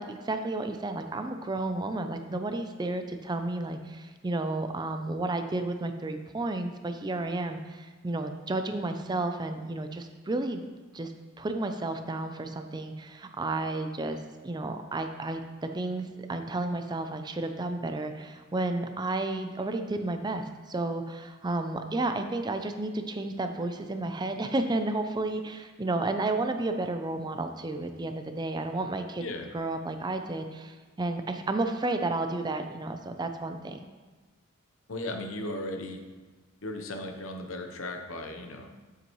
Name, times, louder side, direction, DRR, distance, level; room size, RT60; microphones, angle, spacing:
voice 1, 0.0-10.6 10.9-11.1 11.4-14.2 14.4-29.2 29.5-33.8, right 2 dB, 20° right, 7 dB, 0.4 m, -32 dB
voice 2, 34.9-36.0 36.6-38.7, left 1 dB, 75° left, 5 dB, 0.9 m, -36 dB
7.9 x 7.6 x 3.1 m, 1.3 s
head